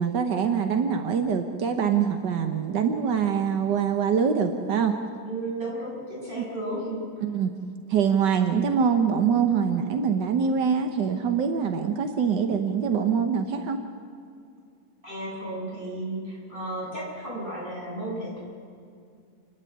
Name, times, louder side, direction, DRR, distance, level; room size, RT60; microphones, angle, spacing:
voice 1, 0.0-5.0 6.4-6.5 7.2-7.5 7.9-13.8, right 7 dB, 85° right, 6 dB, 1.7 m, -24 dB
voice 2, 5.2-7.1 15.0-18.4, right 1 dB, 30° right, -6 dB, 8.2 m, -33 dB
28.5 x 11.0 x 9.4 m, 2.3 s
omnidirectional pair, 1.8 m